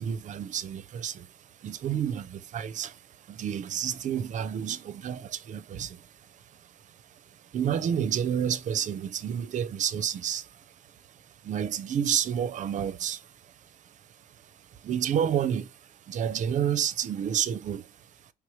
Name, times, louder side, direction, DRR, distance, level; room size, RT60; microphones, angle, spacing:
voice 1, 0.0-18.3, right 9 dB, 45° right, 0.5 m, -31 dB
4.9 x 3.4 x 3.0 m
cardioid pair, 110°, 17 cm